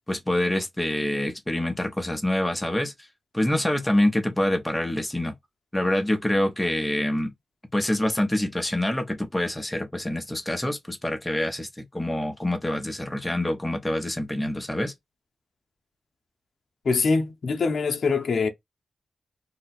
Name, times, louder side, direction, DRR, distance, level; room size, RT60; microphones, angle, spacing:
voice 1, 0.1-2.9 3.3-5.3 5.7-7.3 7.7-11.7 11.9-14.9, left 1 dB, 10° left, 0.9 m, -26 dB
voice 2, 16.8-18.5, left 4 dB, 65° left, 0.7 m, -23 dB
2.9 x 2.4 x 4.2 m
wide cardioid pair, 140°, 0 cm